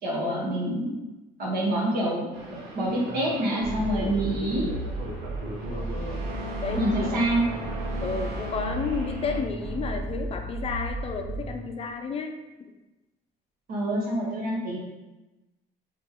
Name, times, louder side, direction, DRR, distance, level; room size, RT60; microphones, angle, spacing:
voice 1, 0.0-1.0 1.4-4.7 6.8-7.4 13.7-14.8, right 1 dB, 60° right, -5 dB, 1.4 m, -27 dB
sound 1, 2.3-9.4, equal, 90° right, 0.9 m, -37 dB
sound 2, 3.6-11.6, right 2 dB, 10° right, 1.2 m, -34 dB
voice 2, 5.7-6.2 6.6-7.2 8.0-12.4, left 5 dB, 35° left, 5 dB, 0.5 m, -32 dB
5.2 x 2.6 x 2.9 m, 1.1 s
cardioid pair, 110°, 17 cm